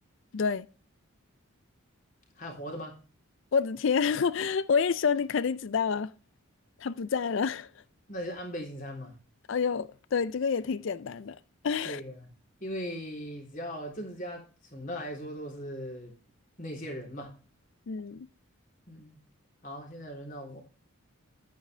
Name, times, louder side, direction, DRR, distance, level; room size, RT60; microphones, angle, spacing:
voice 1, 0.3-0.7 3.5-6.1 6.8-7.7 9.5-11.4 11.6-12.0 17.9-18.3, left 6 dB, 60° left, 0.4 m, -28 dB
voice 2, 2.4-3.0 8.1-9.1 11.8-12.3 12.6-14.4 14.7-16.1 16.6-17.3 18.9-19.2 19.6-20.6, equal, 40° left, 3.5 m, -39 dB
10.0 x 9.2 x 3.3 m
head